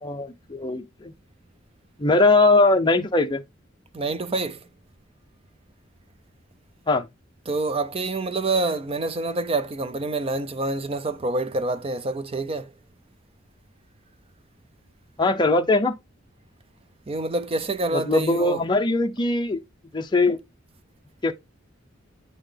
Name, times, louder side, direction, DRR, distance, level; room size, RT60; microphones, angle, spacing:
voice 1, 0.0-1.1 2.0-3.4 6.9-7.1 15.2-15.9 17.9-19.6 19.9-20.4 21.2-21.3, left 2 dB, 20° left, 0.6 m, -20 dB
voice 2, 3.9-4.6 7.5-12.7 17.1-18.6, right 2 dB, 30° right, 0.5 m, -27 dB
8.9 x 3.9 x 3.3 m
head